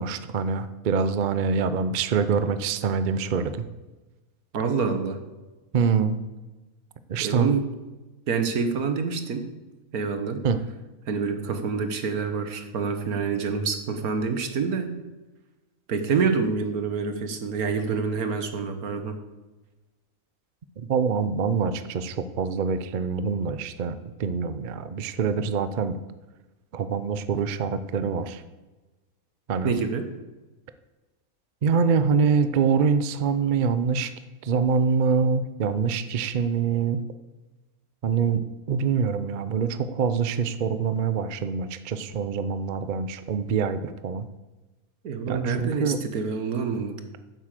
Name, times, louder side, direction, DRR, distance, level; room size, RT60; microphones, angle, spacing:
voice 1, 0.0-3.6 5.7-6.2 7.1-7.5 10.4-10.6 20.8-26.0 26.7-28.4 29.5-29.7 31.6-34.1 34.4-37.0 38.0-44.2 45.3-46.0, right 6 dB, 50° right, 11 dB, 0.6 m, -25 dB
voice 2, 4.5-5.2 7.2-7.7 8.3-9.5 9.9-10.4 11.1-14.9 15.9-19.2 29.6-30.0 45.0-47.0, right 5 dB, 85° right, 7 dB, 1.7 m, -27 dB
9.8 x 7.9 x 7.5 m, 1.2 s
omnidirectional pair, 1.5 m